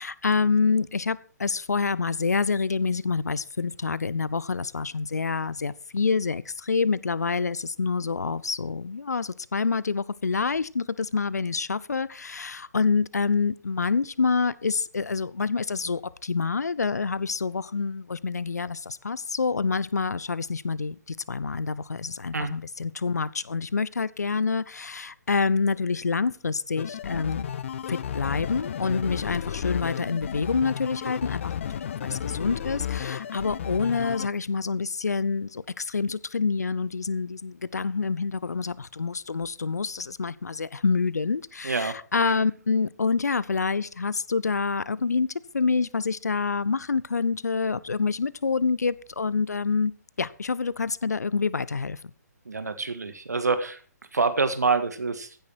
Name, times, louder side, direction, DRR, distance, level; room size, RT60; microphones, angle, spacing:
voice 1, 0.0-27.5 27.9-31.7 32.0-45.3 45.5-49.9 50.2-52.1, left 4 dB, 70° left, 21 dB, 0.8 m, -27 dB
sound 1, 26.8-34.3, left 9 dB, 45° left, 1.0 m, -33 dB
voice 2, 41.6-41.9 42.3-42.4 52.4-53.8 54.1-55.4, right 4 dB, 70° right, 10 dB, 1.7 m, -26 dB
15.5 x 10.0 x 4.6 m, 0.42 s
figure-of-eight pair, 130°, 9 cm